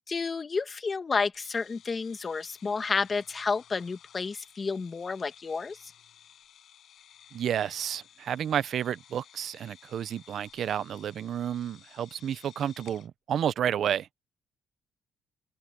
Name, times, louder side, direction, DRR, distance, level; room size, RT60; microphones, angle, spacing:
voice 1, 0.1-5.9, left 4 dB, 35° left, 1.9 m, -31 dB
sound 1, 1.3-13.1, left 10 dB, 70° left, 6.5 m, -56 dB
voice 2, 7.3-14.1, right 9 dB, 65° right, 0.7 m, -31 dB
open air
cardioid pair, 75°, 0 cm